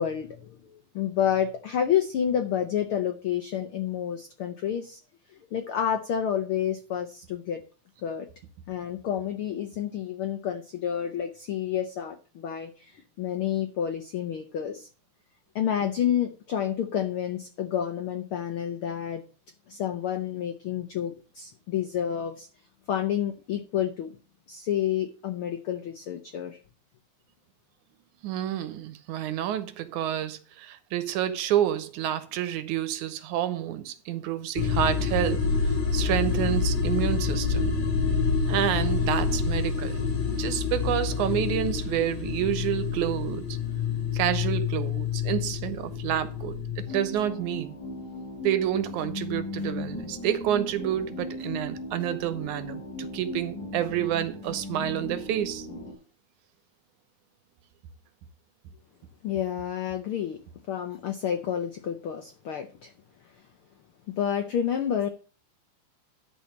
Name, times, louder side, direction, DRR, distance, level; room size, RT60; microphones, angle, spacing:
voice 1, 0.0-5.0 5.3-7.6 8.0-8.3 8.7-14.9 15.5-19.2 19.7-22.5 22.9-24.2 24.5-26.6 59.2-60.4 60.7-62.9 64.1-65.1, left 9 dB, 85° left, 1.2 m, -29 dB
voice 2, 28.2-37.8 38.5-40.0 40.4-43.4 44.1-46.6 46.9-47.8 48.4-55.7, right 11 dB, 80° right, 2.2 m, -29 dB
sound 1, 34.6-46.9, left 5 dB, 60° left, 3.5 m, -27 dB
sound 2, 46.9-55.9, left 2 dB, 30° left, 4.3 m, -37 dB
12.0 x 4.3 x 7.1 m
omnidirectional pair, 3.6 m